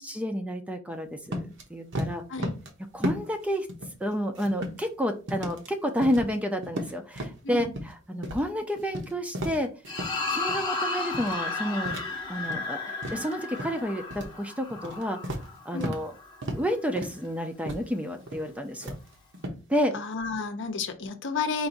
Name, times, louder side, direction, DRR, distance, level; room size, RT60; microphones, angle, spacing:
voice 1, 0.0-2.2 2.9-3.7 4.0-9.7 10.3-12.0 12.3-15.2 15.7-16.1 16.5-18.9 19.7-19.9, equal, 5° right, 5 dB, 0.5 m, -30 dB
sound 1, 1.3-1.6 1.9-2.7 3.0-3.4 3.7-4.9 5.3-5.7 6.0-6.4 6.6-7.9 8.2-8.5 8.8-10.2 10.5-10.8 11.1-11.5 11.8-12.7 13.0-13.8 14.1-14.4 14.7-16.1 16.4-16.7 17.0-17.3 17.7-17.9 18.2-18.5 18.8-19.6, equal, 60° right, 1.0 m, -35 dB
sound 2, 9.9-16.4, left 3 dB, 20° left, 0.8 m, -34 dB
voice 2, 19.9-21.7, left 4 dB, 60° left, 7 dB, 0.7 m, -31 dB
4.6 x 2.6 x 3.9 m, 0.32 s
head